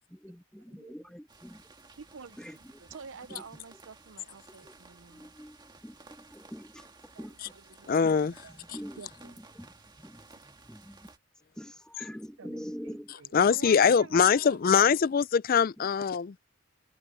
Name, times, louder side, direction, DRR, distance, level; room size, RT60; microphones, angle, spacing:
voice 1, 0.1-1.6 2.4-2.8 3.3-3.5 4.6-4.7 5.1-7.5 8.0-11.1 11.3-13.4 15.8-15.9, equal, 5° left, 1.7 m, -45 dB
sound 1, 1.3-11.2, right 3 dB, 20° right, 2.0 m, -55 dB
voice 2, 2.0-2.4 2.9-5.3 7.1-9.4 12.4-15.0, right 5 dB, 65° right, 0.6 m, -49 dB
voice 3, 7.9-8.3 13.3-16.4, left 6 dB, 40° left, 0.3 m, -23 dB
head